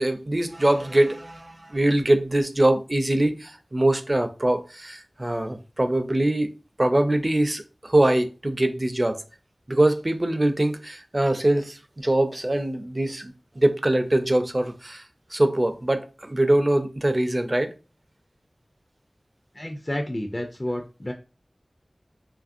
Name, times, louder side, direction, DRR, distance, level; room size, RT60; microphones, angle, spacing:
voice 1, 0.0-6.5 6.8-9.2 9.7-15.0 15.3-17.7, right 1 dB, 35° right, 0.4 m, -23 dB
voice 2, 19.5-21.1, left 1 dB, 30° left, 0.4 m, -30 dB
3.0 x 2.6 x 2.5 m
wide cardioid pair, 50°, 0 cm